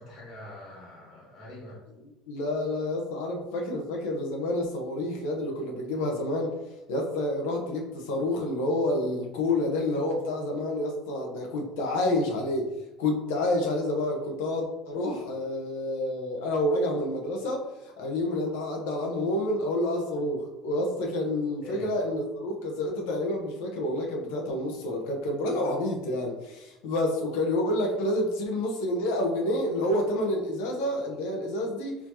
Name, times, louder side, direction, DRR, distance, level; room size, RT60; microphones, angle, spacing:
voice 1, 0.0-1.8 21.6-21.9, left 1 dB, 50° left, -4 dB, 1.4 m, -43 dB
voice 2, 2.3-6.5 6.9-12.7 13.0-32.0, left 1 dB, 85° left, 1 dB, 0.9 m, -29 dB
4.1 x 2.9 x 2.7 m, 1.0 s
cardioid pair, 140°, 0 cm